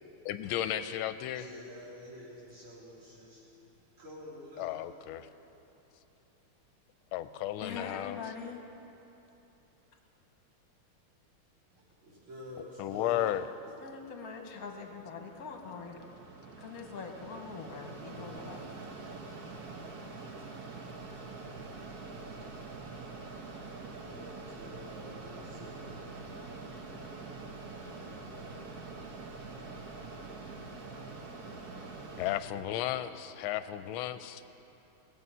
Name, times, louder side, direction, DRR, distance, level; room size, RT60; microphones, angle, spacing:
voice 1, 0.2-1.4 4.6-5.3 7.1-8.2 12.8-13.4 32.2-34.4, left 12 dB, 80° left, 12 dB, 1.4 m, -34 dB
voice 2, 1.3-3.6 3.9-4.8 11.7-13.3 23.1-28.6 32.0-32.8, left 1 dB, 80° right, -8 dB, 4.4 m, -50 dB
voice 3, 7.6-8.6 13.8-16.0 16.6-18.6, left 5 dB, 50° left, 3 dB, 1.4 m, -43 dB
Mechanisms, 14.4-32.4, right 3 dB, 55° right, 1.4 m, -45 dB
20.5 x 7.6 x 5.5 m, 2.9 s
omnidirectional pair, 2.3 m